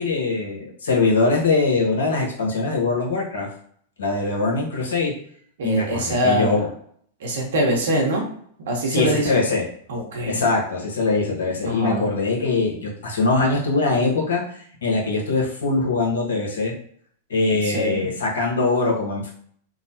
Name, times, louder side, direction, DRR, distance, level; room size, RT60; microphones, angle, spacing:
voice 1, 0.0-3.5 4.0-5.1 5.6-6.6 8.9-9.6 10.3-16.7 17.3-19.3, left 3 dB, 80° left, -2 dB, 0.9 m, -22 dB
voice 2, 5.6-6.7 7.2-8.3 8.7-9.4 9.9-10.5 11.6-12.1 17.5-18.1, equal, 70° right, 0 dB, 0.9 m, -23 dB
3.0 x 2.0 x 2.8 m, 0.62 s
hypercardioid pair, 105°, 0 cm